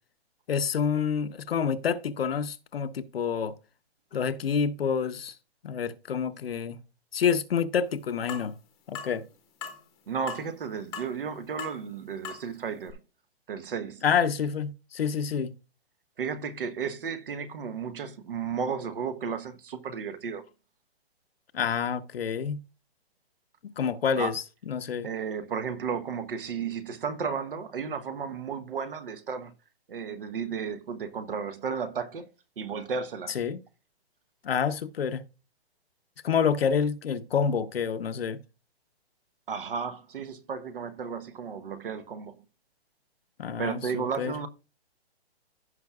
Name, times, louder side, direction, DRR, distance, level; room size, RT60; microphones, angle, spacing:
voice 1, 0.5-3.5 4.1-5.3 5.6-6.8 7.1-8.5 8.9-9.2 14.0-15.5 21.5-22.6 23.8-25.1 33.3-33.6 34.4-35.2 36.2-38.4 43.4-44.3, left 7 dB, 60° left, 0.9 m, -28 dB
sound 1, 8.3-8.5 8.9-9.1 9.6-9.8 10.3-10.5 10.9-11.2 11.6-11.8 12.2-12.4 12.9-13.0, left 7 dB, 10° left, 1.0 m, -38 dB
voice 2, 10.1-13.0 13.5-14.0 16.2-20.4 24.2-24.3 25.0-29.5 29.9-32.3 32.6-33.4 39.5-42.4 43.6-44.5, right 6 dB, 55° right, 1.1 m, -33 dB
16.0 x 5.8 x 2.4 m
hypercardioid pair, 170°, 33 cm